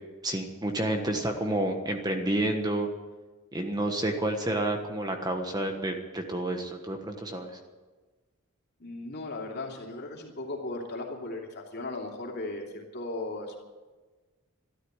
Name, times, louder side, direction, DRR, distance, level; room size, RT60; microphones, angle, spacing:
voice 1, 0.2-2.9 3.5-7.5, right 1 dB, 20° right, 4 dB, 1.3 m, -29 dB
voice 2, 8.8-13.6, left 2 dB, 50° left, 0 dB, 2.9 m, -37 dB
13.0 x 13.0 x 8.1 m, 1.3 s
head